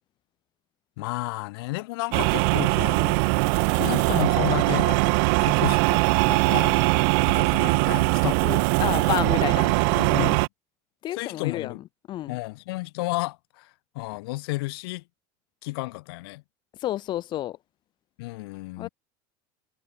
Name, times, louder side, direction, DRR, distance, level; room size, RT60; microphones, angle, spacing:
voice 1, 1.0-3.2 3.7-8.7 10.1-10.4 11.1-11.8 12.3-15.0 15.6-16.4 18.2-18.9, left 22 dB, 80° left, 5.8 m, -32 dB
sound 1, 2.1-10.5, right 35 dB, 65° right, 0.4 m, -21 dB
voice 2, 8.8-10.3 11.0-11.7 12.1-12.4 16.8-17.6 18.8-18.9, left 13 dB, 40° left, 1.6 m, -30 dB
cardioid pair, 150°, 12 cm